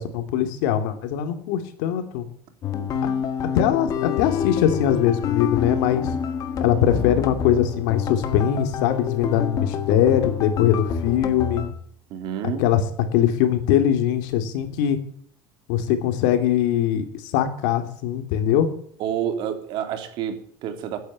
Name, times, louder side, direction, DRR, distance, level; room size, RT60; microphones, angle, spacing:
voice 1, 0.0-2.2 3.5-6.1 6.6-11.6 12.6-12.8 13.1-15.0 15.7-18.7, left 10 dB, 80° left, 8 dB, 2.7 m, -21 dB
sound 1, 2.6-11.7, left 8 dB, 35° left, 1.8 m, -27 dB
voice 2, 12.1-12.6 19.0-21.0, right 9 dB, 50° right, 7 dB, 2.8 m, -29 dB
15.5 x 9.6 x 8.8 m, 0.62 s
cardioid pair, 165°, 10 cm